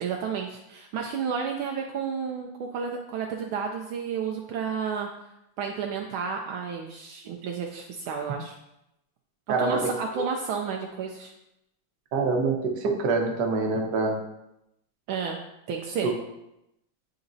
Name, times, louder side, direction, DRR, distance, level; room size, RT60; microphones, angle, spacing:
voice 1, 0.0-5.1 5.6-8.5 9.6-11.3 15.1-15.4 15.7-16.1, right 6 dB, 75° right, 1 dB, 1.3 m, -31 dB
voice 2, 9.5-10.2 12.1-14.2 16.0-16.1, right 3 dB, 55° right, 1 dB, 1.3 m, -26 dB
9.5 x 3.9 x 2.6 m, 0.86 s
omnidirectional pair, 2.4 m